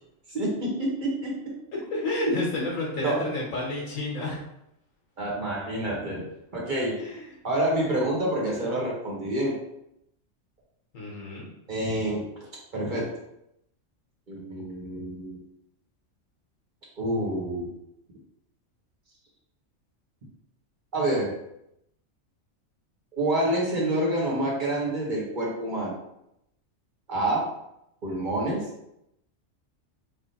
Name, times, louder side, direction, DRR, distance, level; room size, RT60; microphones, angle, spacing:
voice 1, 0.3-1.3 2.3-2.7 3.0-3.2 5.2-6.3 6.5-6.9 7.4-9.5 11.7-12.2 12.7-13.1 14.3-15.4 17.0-17.7 20.9-21.3 23.2-26.0 27.1-27.5 28.0-28.6, right 1 dB, 40° right, -4 dB, 1.2 m, -27 dB
voice 2, 1.7-4.4 7.0-7.3 7.8-8.0 10.9-11.5, left 2 dB, 75° left, -3 dB, 1.3 m, -31 dB
3.5 x 2.4 x 4.0 m, 0.81 s
omnidirectional pair, 1.4 m